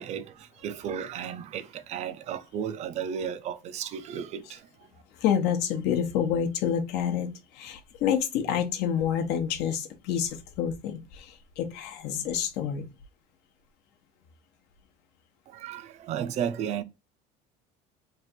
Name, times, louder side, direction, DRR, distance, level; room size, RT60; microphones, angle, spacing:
voice 1, 0.0-4.7 15.5-16.8, right 8 dB, 40° right, 0.4 m, -34 dB
voice 2, 5.2-12.9, left 8 dB, 65° left, 0.8 m, -28 dB
3.2 x 2.4 x 4.2 m
cardioid pair, 150°, 19 cm